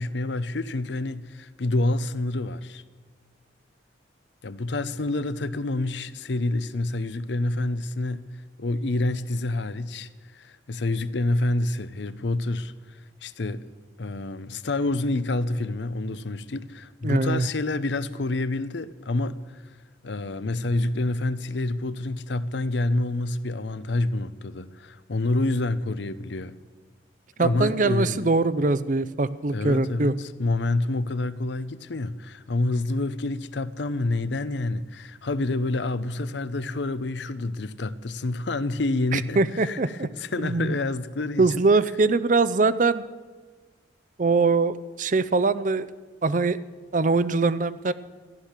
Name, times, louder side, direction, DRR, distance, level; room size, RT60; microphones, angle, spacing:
voice 1, 0.0-2.8 4.4-8.3 8.6-13.7 14.0-19.6 20.0-26.6 27.4-28.3 29.5-41.7, left 2 dB, 70° left, 0.7 m, -28 dB
voice 2, 17.0-17.5 27.4-30.1 39.1-40.1 40.4-40.7 41.4-43.0 44.2-45.9 46.2-46.6 46.9-47.9, right 3 dB, 40° right, 0.5 m, -22 dB
14.5 x 11.5 x 7.4 m
head